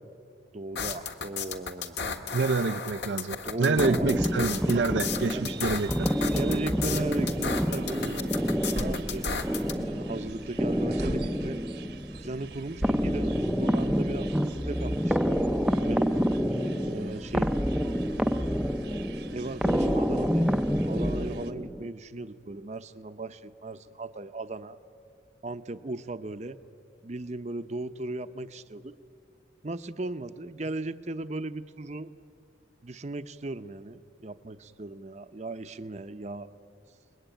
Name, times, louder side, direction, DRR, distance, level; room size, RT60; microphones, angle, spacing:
voice 1, 0.5-2.0 3.4-4.1 4.7-4.9 5.3-5.5 6.3-9.3 9.7-11.6 12.2-15.2 15.8-16.2 16.5-17.5 19.3-24.8 25.4-26.6 27.0-28.9 29.6-32.1 32.8-36.5, right 2 dB, 40° right, 0.7 m, -37 dB
sound 1, 0.7-9.7, left 6 dB, 70° left, 1.7 m, -34 dB
voice 2, 2.3-6.1, right 4 dB, 80° right, 0.6 m, -27 dB
sound 2, 3.8-21.9, equal, ahead, 0.6 m, -28 dB
sound 3, 4.0-21.5, right 2 dB, 60° right, 1.2 m, -44 dB
29.5 x 21.0 x 9.1 m
head